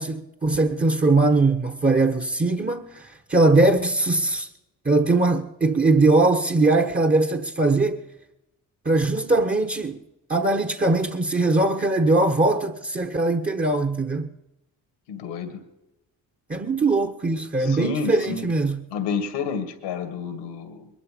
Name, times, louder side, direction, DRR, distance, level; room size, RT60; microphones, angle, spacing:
voice 1, 0.0-4.5 4.8-8.0 8.8-10.0 10.3-14.3 16.5-18.8, right 2 dB, 20° right, 1.1 m, -21 dB
voice 2, 15.1-15.6 17.6-18.5 18.9-20.9, left 5 dB, 85° left, 2.0 m, -30 dB
21.5 x 12.5 x 5.2 m
supercardioid pair, 50°, 42 cm